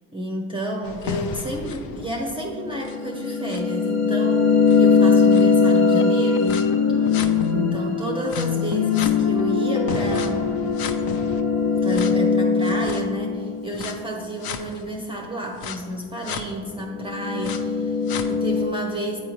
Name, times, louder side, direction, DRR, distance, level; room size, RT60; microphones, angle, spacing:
voice 1, 0.1-6.6 7.0-7.3 7.5-10.5 11.8-19.2, right 1 dB, 10° right, 1 dB, 0.5 m, -30 dB
sound 1, 0.9-7.8 8.3-14.0 14.4-14.6 15.6-15.7 16.3-16.4 16.9-18.7, left 5 dB, 55° left, 0.6 m, -21 dB
sound 2, 2.8-14.9, left 5 dB, 75° left, 1.1 m, -34 dB
9.4 x 3.7 x 3.0 m, 2.2 s
supercardioid pair, 80°, 45 cm